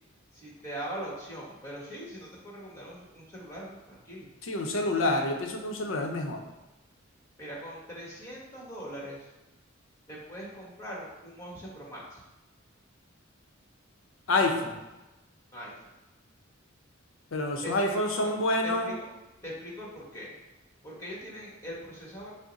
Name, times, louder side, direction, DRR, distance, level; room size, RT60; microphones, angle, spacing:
voice 1, 0.3-4.3 7.4-9.3 10.1-12.2 15.5-15.7 17.6-18.3 18.6-18.9 19.4-20.4 20.8-22.3, equal, 15° left, -4 dB, 1.3 m, -41 dB
voice 2, 4.4-6.4 14.3-14.8 17.3-19.0, left 2 dB, 85° left, 2 dB, 0.7 m, -28 dB
6.2 x 2.1 x 4.0 m, 1.0 s
head